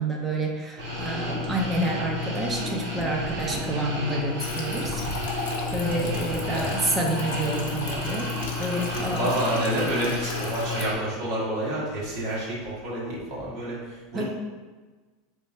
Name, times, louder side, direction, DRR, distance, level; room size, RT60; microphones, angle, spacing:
voice 1, 0.0-5.0 5.7-8.3 8.6-9.2 14.1-14.3, right 1 dB, 10° right, -1 dB, 0.6 m, -28 dB
sound 1, 0.8-11.0, left 2 dB, 50° right, 1.1 m, -31 dB
sound 2, 4.4-10.8, left 4 dB, 90° left, 0.7 m, -37 dB
voice 2, 6.3-6.7 8.9-14.3, right 1 dB, 35° right, -6 dB, 1.4 m, -29 dB
3.6 x 3.4 x 4.2 m, 1.3 s
supercardioid pair, 170°, 0 cm